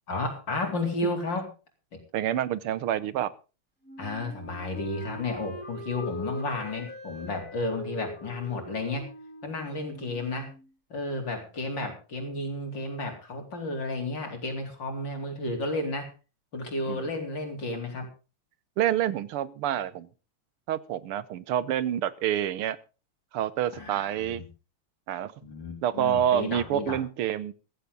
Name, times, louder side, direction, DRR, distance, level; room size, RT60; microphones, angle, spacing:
voice 1, 0.1-1.5 1.9-2.0 4.0-9.1 9.4-10.5 10.9-16.1 16.5-18.1 23.7-24.5 25.4-27.0, left 2 dB, 55° left, 3 dB, 4.6 m, -32 dB
voice 2, 2.1-3.3 16.9-17.1 18.8-20.1 20.7-22.8 23.3-24.4 25.1-25.3 25.8-27.5, right 11 dB, 85° right, 17 dB, 1.8 m, -27 dB
Wind instrument woodwind instrument, 3.8-10.7, equal, 5° left, 4.2 m, -42 dB
15.5 x 15.0 x 3.9 m, 0.33 s
omnidirectional pair, 2.4 m